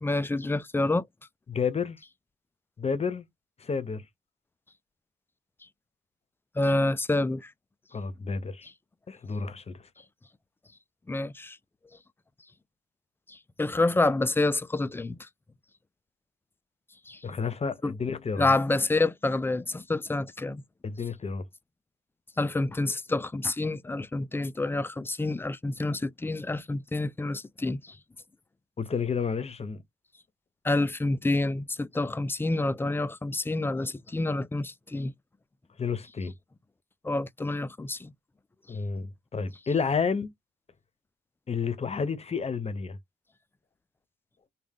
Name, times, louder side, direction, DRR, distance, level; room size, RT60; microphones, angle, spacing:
voice 1, 0.0-1.1 6.6-7.5 11.1-11.6 13.3-15.3 17.1-17.2 17.8-17.9 18.4-20.6 22.4-28.0 30.6-35.1 37.0-38.1, left 2 dB, 10° left, 0.4 m, -28 dB
voice 2, 1.5-2.0 2.8-3.3 3.6-4.1 7.9-8.7 9.1-9.9 17.2-18.5 20.8-21.4 28.8-29.8 35.8-36.3 38.7-40.3 41.5-43.0, left 5 dB, 30° left, 0.9 m, -30 dB
3.5 x 2.4 x 3.6 m
cardioid pair, 90°, 20 cm